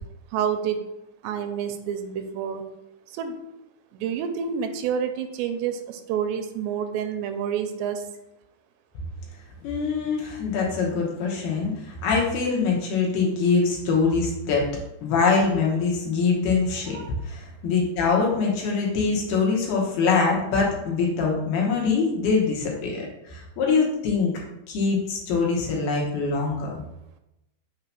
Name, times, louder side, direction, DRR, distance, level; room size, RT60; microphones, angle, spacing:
voice 1, 0.3-0.8 1.2-2.6 3.1-3.4 3.9-8.1 16.9-17.1, right 8 dB, 85° right, 7 dB, 2.7 m, -28 dB
voice 2, 9.6-14.7 15.0-24.3 24.7-26.7, left 4 dB, 70° left, -2 dB, 2.6 m, -23 dB
6.7 x 2.8 x 5.6 m, 0.90 s
omnidirectional pair, 5.0 m